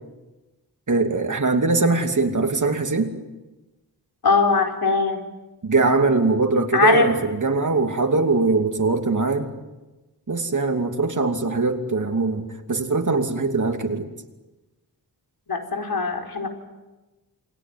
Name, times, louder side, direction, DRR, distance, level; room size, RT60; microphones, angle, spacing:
voice 1, 0.9-3.1 5.6-9.5 10.3-14.1, right 3 dB, 50° right, 5 dB, 2.8 m, -21 dB
voice 2, 4.2-5.2 6.7-7.1 15.5-16.5, left 4 dB, 65° left, 3 dB, 4.8 m, -20 dB
28.5 x 21.0 x 9.3 m, 1.1 s
wide cardioid pair, 110°, 40 cm